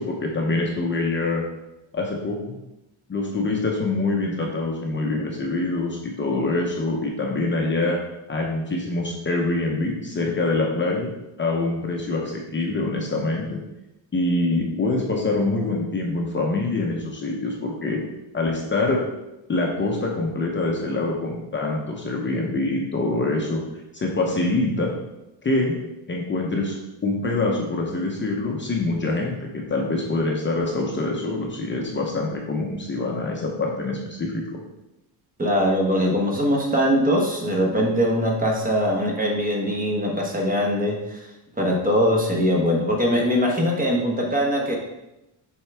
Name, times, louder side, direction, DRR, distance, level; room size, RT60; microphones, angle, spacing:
voice 1, 0.0-1.4 1.9-2.6 3.1-8.0 8.3-11.1 11.4-13.6 14.1-18.0 18.3-19.0 19.5-23.6 23.9-24.9 25.4-25.8 26.1-26.8 27.0-34.4, left 2 dB, 25° left, -1 dB, 0.7 m, -25 dB
voice 2, 35.4-41.2 41.6-44.8, equal, 20° right, 0 dB, 1.0 m, -22 dB
7.3 x 4.6 x 3.4 m, 0.93 s
cardioid pair, 160°, 47 cm